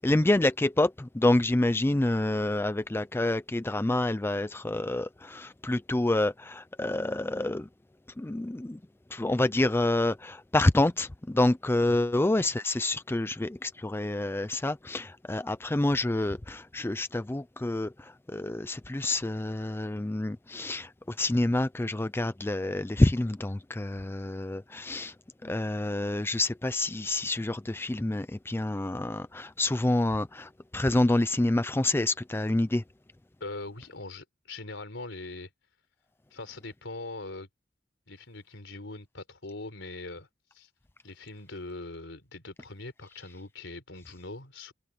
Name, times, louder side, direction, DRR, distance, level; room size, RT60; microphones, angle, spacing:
voice 1, 0.0-7.7 8.2-8.8 9.1-17.9 18.3-20.9 21.2-25.1 25.4-32.8, left 2 dB, 10° left, 0.4 m, -27 dB
voice 2, 33.4-35.5 36.3-37.5 38.1-40.3 40.5-40.7 41.0-44.7, left 2 dB, 70° left, 4.5 m, -41 dB
head